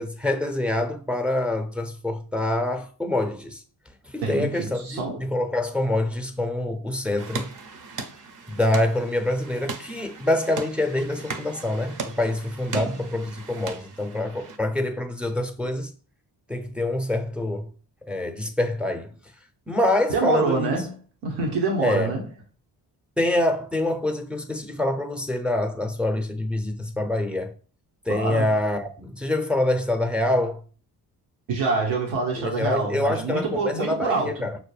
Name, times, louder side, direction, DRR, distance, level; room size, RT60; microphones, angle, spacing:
voice 1, 0.0-3.6 4.1-7.5 8.5-15.9 16.5-17.7 18.1-19.1 19.7-20.8 21.8-22.1 23.2-27.5 28.1-30.6 32.4-34.6, left 1 dB, ahead, 0.6 m, -26 dB
voice 2, 4.2-5.2 12.7-13.0 20.1-22.3 28.1-28.5 31.5-34.3, right 3 dB, 90° right, 1.0 m, -26 dB
sound 1, 7.2-14.6, right 4 dB, 45° right, 0.7 m, -38 dB
5.8 x 2.1 x 3.2 m
supercardioid pair, 50°, 44 cm